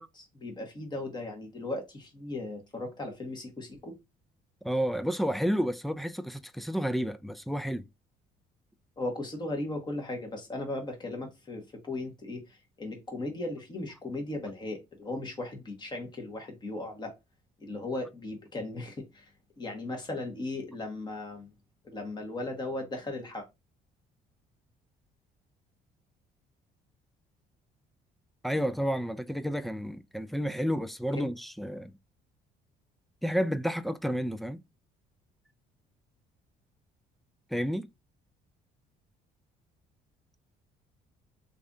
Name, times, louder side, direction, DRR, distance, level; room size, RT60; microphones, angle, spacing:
voice 1, 0.0-4.0 9.0-17.1 17.6-19.3 19.6-21.5 21.8-23.5 31.1-31.3, left 2 dB, 25° left, 1.5 m, -37 dB
voice 2, 4.6-7.9 28.4-31.9 33.2-34.6 37.5-37.9, equal, ahead, 0.3 m, -30 dB
3.2 x 2.7 x 3.6 m
cardioid pair, 110°, 17 cm